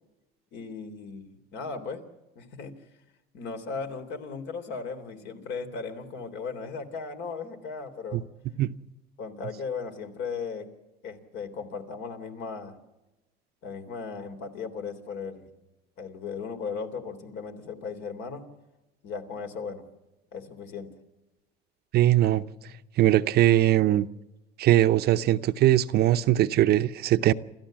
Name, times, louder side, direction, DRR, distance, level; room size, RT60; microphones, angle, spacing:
voice 1, 0.5-2.0 2.3-2.7 3.3-8.2 9.2-10.7 11.0-12.7 13.6-15.5 16.0-18.5 19.0-19.8 20.3-20.9, left 5 dB, 60° left, 3.3 m, -36 dB
voice 2, 21.9-22.4 23.0-24.1 24.6-27.3, right 13 dB, 50° right, 0.7 m, -21 dB
28.5 x 13.5 x 7.5 m
cardioid pair, 130°, 21 cm